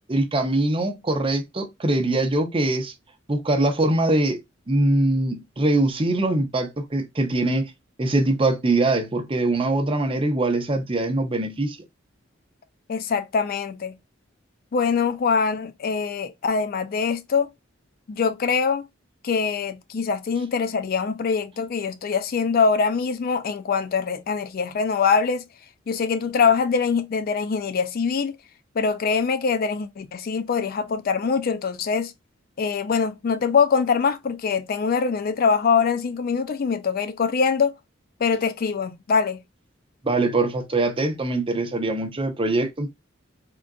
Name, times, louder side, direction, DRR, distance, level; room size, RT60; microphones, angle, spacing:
voice 1, 0.0-2.9 3.3-4.4 4.7-7.7 8.0-11.8 40.0-42.9, right 2 dB, 25° right, 0.6 m, -23 dB
voice 2, 12.9-13.9 14.7-17.5 18.1-18.8 19.2-25.4 25.9-28.3 28.8-32.1 32.6-37.7 38.2-39.4, left 5 dB, 50° left, 0.4 m, -23 dB
3.7 x 2.4 x 2.3 m
head